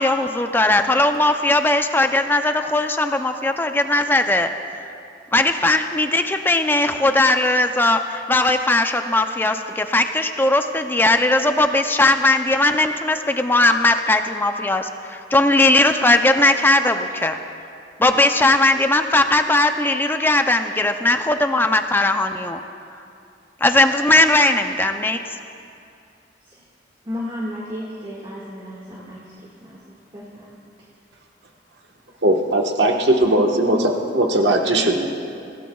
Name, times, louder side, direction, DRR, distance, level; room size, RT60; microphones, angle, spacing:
voice 1, 0.0-4.5 5.3-14.9 15.3-17.4 18.0-22.6 23.6-25.2, left 2 dB, 10° left, 7 dB, 0.5 m, -18 dB
voice 2, 27.0-29.8 30.1-30.6, left 1 dB, 25° right, -5 dB, 1.8 m, -33 dB
voice 3, 32.2-35.2, right 1 dB, 65° right, 1 dB, 1.3 m, -19 dB
25.0 x 16.5 x 2.3 m, 2.5 s
head